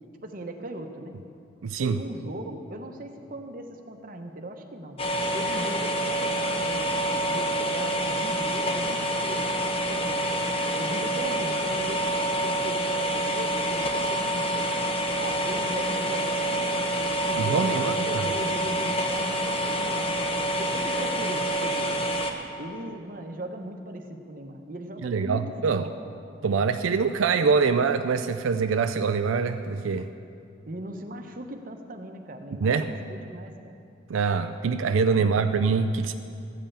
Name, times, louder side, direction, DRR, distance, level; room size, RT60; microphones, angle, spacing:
voice 1, 0.2-1.2 1.8-5.0 5.3-9.5 9.9-10.2 10.7-14.5 15.2-20.3 20.6-21.9 22.6-25.4 25.7-25.9 30.7-33.8 35.1-35.5, right 1 dB, 45° right, 4 dB, 0.9 m, -38 dB
voice 2, 1.6-2.0 17.4-18.1 25.0-25.8 26.4-30.1 32.6-32.9 34.1-36.1, right 5 dB, 90° right, 9 dB, 0.4 m, -24 dB
sound 1, 5.0-22.3, right 1 dB, 30° left, 0.9 m, -27 dB
14.0 x 5.5 x 8.7 m, 2.5 s
head